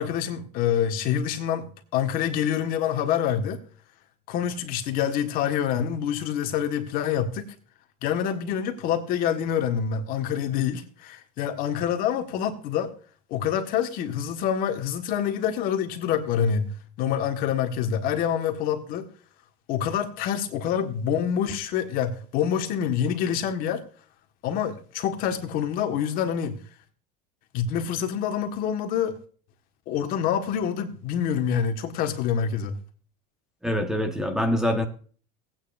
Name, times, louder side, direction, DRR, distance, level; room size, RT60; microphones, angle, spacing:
voice 1, 0.0-3.6 4.3-7.5 8.0-12.9 13.3-16.7 17.0-19.1 19.7-23.8 24.4-26.6 27.5-29.2 29.9-32.8, left 8 dB, 50° left, 6 dB, 1.6 m, -26 dB
voice 2, 33.6-34.9, equal, 5° right, 6 dB, 1.3 m, -24 dB
17.0 x 9.1 x 2.6 m, 0.42 s
supercardioid pair, 135°, 19 cm